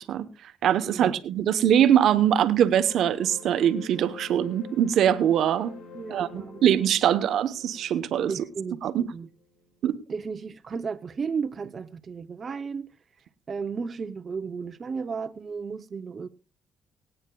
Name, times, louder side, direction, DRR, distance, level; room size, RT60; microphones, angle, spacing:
voice 1, 0.6-5.7 6.1-8.3 8.8-9.0 9.8-10.0, right 10 dB, 75° right, 0.9 m, -22 dB
sound 1, 2.8-9.8, left 4 dB, 75° left, 2.3 m, -47 dB
voice 2, 5.9-6.6 8.3-8.8 9.1-9.3 10.1-12.9 13.5-16.3, right 5 dB, 40° right, 0.6 m, -34 dB
24.5 x 8.8 x 2.3 m
cardioid pair, 90°, 0 cm